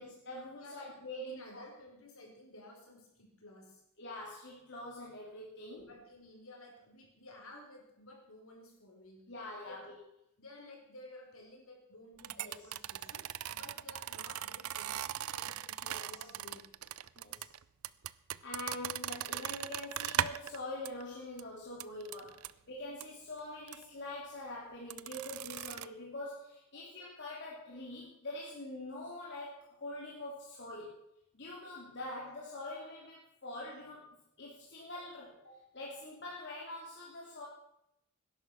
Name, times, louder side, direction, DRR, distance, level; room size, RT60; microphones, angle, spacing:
voice 1, 0.0-1.6 4.0-5.9 9.3-10.0 12.4-12.6 15.8-16.1 17.2-17.5 18.4-31.0 31.3-34.1 34.4-37.5, left 1 dB, 50° left, -4 dB, 3.0 m, -44 dB
voice 2, 0.6-1.0 1.3-3.8 5.8-9.2 9.6-9.9 10.4-16.7 22.2-22.4 26.7-26.8 36.8-36.9, left 1 dB, 70° left, 1 dB, 4.8 m, -54 dB
sound 1, 12.2-20.6 20.9-21.0 21.4-21.5 21.8-22.5 23.0-23.1 23.7-23.8 24.9-25.9, right 11 dB, 75° right, 0.5 m, -39 dB
18.5 x 11.0 x 6.0 m, 0.80 s
head